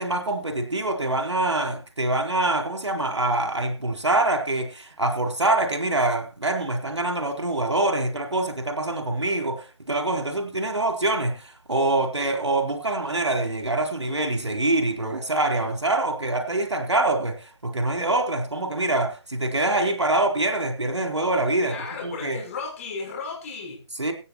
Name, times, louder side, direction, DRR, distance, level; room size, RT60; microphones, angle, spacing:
voice 1, 0.0-21.8 22.0-22.4 24.0-24.1, right 2 dB, 80° right, 4.0 m, -25 dB
voice 2, 21.6-23.8, left 4 dB, 30° left, 6.1 m, -34 dB
16.0 x 8.3 x 4.6 m
figure-of-eight pair, 150°, 15 cm